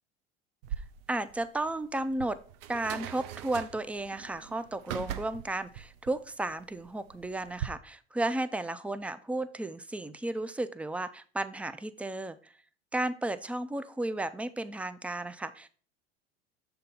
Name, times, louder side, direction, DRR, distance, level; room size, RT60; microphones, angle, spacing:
sound 1, 0.6-7.7, right 11 dB, 65° right, 0.6 m, -41 dB
voice 1, 1.1-2.4 2.7-12.5 12.9-15.7, right 2 dB, 5° right, 12 dB, 0.3 m, -33 dB
6.6 x 3.4 x 5.3 m, 0.42 s
hypercardioid pair, 80°, 31 cm